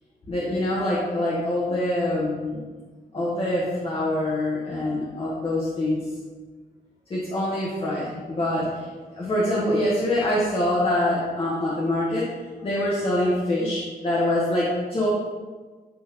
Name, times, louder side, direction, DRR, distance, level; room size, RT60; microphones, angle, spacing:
voice 1, 0.3-2.6 3.1-6.1 7.1-12.2 12.6-15.1, left 1 dB, 40° left, -7 dB, 1.3 m, -25 dB
9.2 x 3.7 x 3.0 m, 1.4 s
wide cardioid pair, 130°, 15 cm